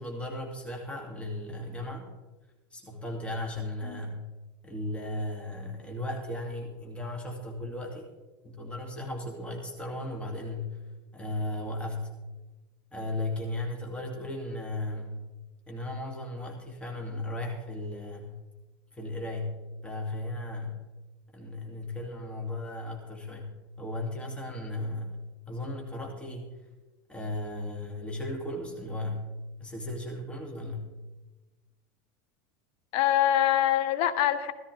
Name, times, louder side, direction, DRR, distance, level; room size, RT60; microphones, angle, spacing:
voice 1, 0.0-2.1 2.7-4.2 4.6-8.1 8.4-10.7 11.1-12.1 12.9-15.2 15.7-18.4 18.9-20.8 21.3-25.1 25.5-26.6 27.1-29.3 29.6-30.9, left 1 dB, 10° left, 0 dB, 2.3 m, -36 dB
voice 2, 32.9-34.5, left 12 dB, 60° left, 11 dB, 1.1 m, -24 dB
15.5 x 14.0 x 3.4 m, 1.2 s
supercardioid pair, 110°, 11 cm